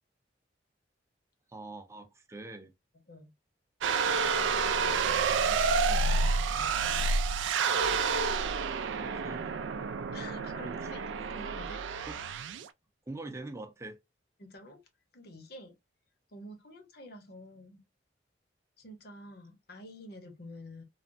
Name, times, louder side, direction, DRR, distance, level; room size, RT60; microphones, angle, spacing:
voice 1, 1.5-2.7 9.0-9.6 10.6-10.9 12.1-12.3 13.1-14.0, right 2 dB, 15° right, 0.5 m, -43 dB
sound 1, 3.8-12.7, right 4 dB, 80° right, 0.3 m, -29 dB
voice 2, 5.4-7.1 10.1-11.0 11.3-11.8 14.4-14.8 15.1-15.7 16.3-17.8 18.8-20.8, left 1 dB, 55° left, 0.8 m, -48 dB
3.3 x 2.0 x 2.5 m
head